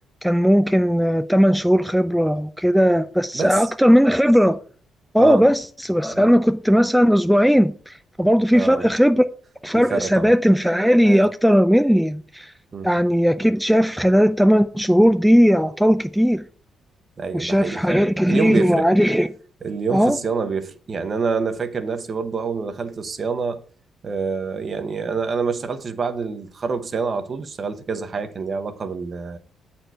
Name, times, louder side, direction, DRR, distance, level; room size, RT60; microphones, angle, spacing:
voice 1, 0.2-4.6 5.1-9.2 9.6-12.5 12.8-16.4 17.3-19.3 19.9-20.2, equal, ahead, 0.4 m, -17 dB
voice 2, 3.3-3.7 5.2-5.5 6.1-6.2 8.5-8.9 9.7-10.3 11.0-11.3 12.7-12.9 17.2-18.9 19.6-23.6 24.0-29.4, right 5 dB, 45° right, 0.9 m, -27 dB
7.8 x 4.3 x 4.5 m
cardioid pair, 90°, 0 cm